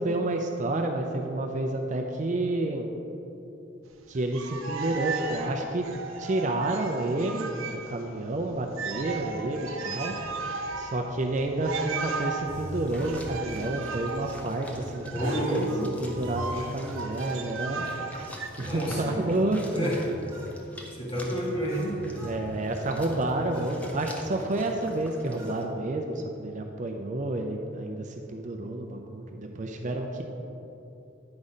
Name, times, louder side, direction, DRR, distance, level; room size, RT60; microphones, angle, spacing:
voice 1, 0.0-2.9 4.1-5.9 6.2-10.1 10.8-17.9 18.6-19.9 22.2-30.2, right 2 dB, 35° right, 3 dB, 0.4 m, -30 dB
sound 1, 4.2-8.0 8.3-8.4 8.7-18.5, right 4 dB, 80° right, 0.6 m, -36 dB
sound 2, 12.4-13.1 15.2-16.8 18.9-20.6 21.7-22.4 23.5-23.8 25.4-25.6, equal, 15° right, 1.2 m, -42 dB
sound 3, 12.7-25.6, equal, 5° left, 0.6 m, -43 dB
voice 2, 15.1-15.9 18.6-19.2 19.7-20.0 20.9-21.9, equal, 25° left, -4 dB, 1.5 m, -29 dB
9.6 x 4.1 x 5.0 m, 2.9 s
head